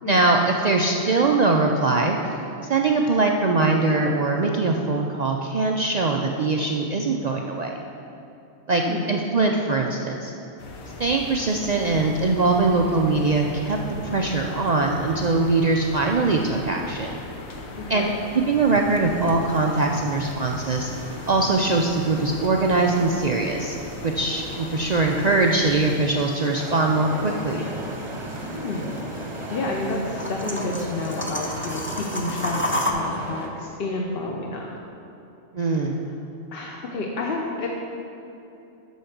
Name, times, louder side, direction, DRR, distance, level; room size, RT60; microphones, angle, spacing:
voice 1, 0.1-2.2 2.7-7.7 8.7-8.8 9.1-10.3 11.0-13.8 14.0-17.2 17.9-18.1 18.3-20.9 21.3-23.8 24.0-27.6 35.5-36.0, right 3 dB, 80° right, 1 dB, 0.3 m, -22 dB
voice 2, 8.7-9.2 17.8-18.1 28.4-28.9 29.5-34.7 36.1-36.2 36.5-37.7, left 2 dB, 50° left, -1 dB, 0.8 m, -30 dB
sound 1, 10.6-26.0, left 2 dB, 80° left, 1.3 m, -39 dB
sound 2, 18.1-32.9, left 1 dB, 15° left, 0.4 m, -36 dB
sound 3, 26.5-33.5, right 1 dB, 25° right, 0.8 m, -35 dB
8.3 x 6.5 x 5.9 m, 2.9 s
omnidirectional pair, 1.4 m